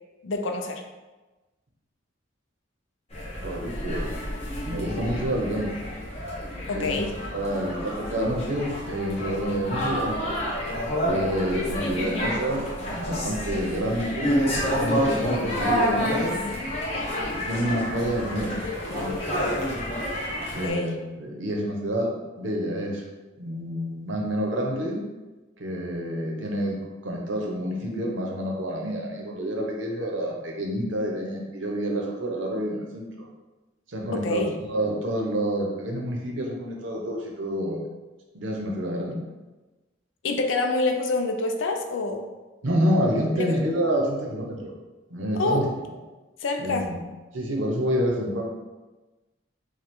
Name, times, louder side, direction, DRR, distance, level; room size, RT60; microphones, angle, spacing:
voice 1, 0.2-0.8 6.7-7.1 20.6-20.9 34.1-34.5 40.2-42.3 43.4-43.6 45.3-45.7 46.4-46.9, left 3 dB, 80° left, 4 dB, 0.5 m, -26 dB
sound 1, 3.1-20.7, equal, 35° left, 1.1 m, -29 dB
voice 2, 3.4-4.1 4.6-5.7 6.7-7.0 7.3-10.4 11.0-12.7 12.9-14.3 14.8-16.4 17.3-19.5 20.5-23.0 23.4-25.0 25.6-26.8 27.0-33.3 33.9-37.8 38.3-39.2 42.6-44.7 45.1-45.6 46.6-47.0 47.3-48.5, equal, 80° right, 0 dB, 0.8 m, -28 dB
5.3 x 2.3 x 3.6 m, 1.2 s
head